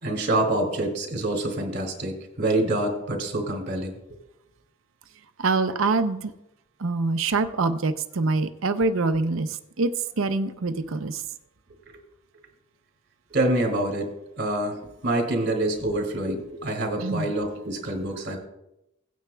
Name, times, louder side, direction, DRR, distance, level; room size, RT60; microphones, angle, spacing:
voice 1, 0.0-3.9 13.3-18.4, right 1 dB, 50° right, 2 dB, 2.5 m, -26 dB
voice 2, 5.4-6.3 6.8-9.5 9.8-9.9 10.2-11.2 17.0-17.3, right 3 dB, 70° right, 10 dB, 0.6 m, -24 dB
17.5 x 9.3 x 2.3 m, 0.87 s
head